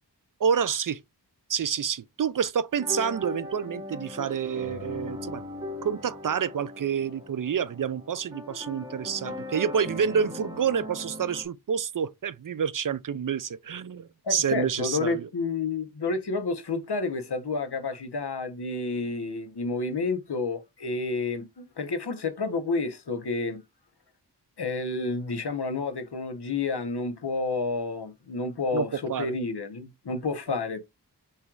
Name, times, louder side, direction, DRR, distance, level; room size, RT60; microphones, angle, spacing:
voice 1, 0.4-1.0 1.5-5.4 5.8-15.3 28.7-29.3, right 7 dB, 55° right, 0.4 m, -28 dB
sound 1, 2.8-11.4, left 2 dB, 10° right, 2.0 m, -39 dB
voice 2, 14.2-23.6 24.6-30.8, left 3 dB, 70° left, 1.1 m, -30 dB
5.9 x 3.2 x 2.5 m
wide cardioid pair, 65°, 41 cm